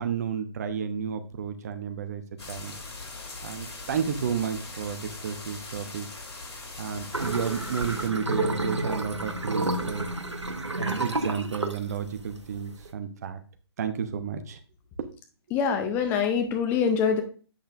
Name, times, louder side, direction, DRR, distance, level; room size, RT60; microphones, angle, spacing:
voice 1, 0.0-2.7 3.4-6.1 6.8-10.1 10.8-13.4 13.8-14.6 15.0-15.1, right 7 dB, 35° right, 9 dB, 0.8 m, -32 dB
sound 1, 2.4-8.1, left 3 dB, 70° left, 3.1 m, -41 dB
sound 2, 7.1-12.9, right 2 dB, 85° right, 1.0 m, -30 dB
voice 2, 15.5-17.2, left 6 dB, 15° left, 5 dB, 0.6 m, -24 dB
7.9 x 6.4 x 2.5 m, 0.37 s
figure-of-eight pair, 135°, 15 cm